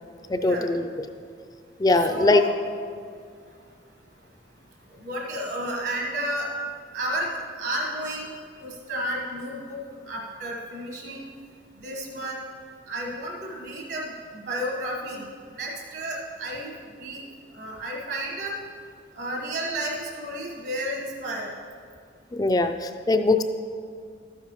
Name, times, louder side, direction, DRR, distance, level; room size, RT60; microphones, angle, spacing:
voice 1, 0.3-0.9 1.8-2.4 22.3-23.4, left 2 dB, 20° left, 8 dB, 0.3 m, -21 dB
voice 2, 2.1-2.5 5.0-6.5 6.9-7.3 7.6-8.3 8.6-9.8 10.0-11.3 11.8-12.4 12.9-15.2 15.6-16.7 17.0-17.2 17.5-18.5 19.2-21.5, right 1 dB, 65° right, -1 dB, 1.4 m, -31 dB
12.5 x 9.4 x 3.0 m, 2.1 s
head